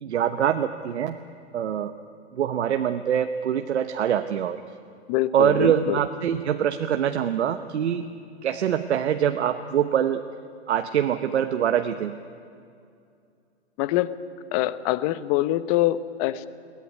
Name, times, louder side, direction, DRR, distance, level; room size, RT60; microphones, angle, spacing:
voice 1, 0.0-1.2 1.5-1.9 2.3-4.6 5.3-8.1 8.4-10.2 10.7-12.2, right 9 dB, 75° right, 7 dB, 1.1 m, -24 dB
voice 2, 5.1-6.0 13.8-14.1 14.5-16.5, left 15 dB, 35° left, 15 dB, 0.9 m, -24 dB
22.0 x 17.5 x 9.6 m, 2.4 s
hypercardioid pair, 130°, 34 cm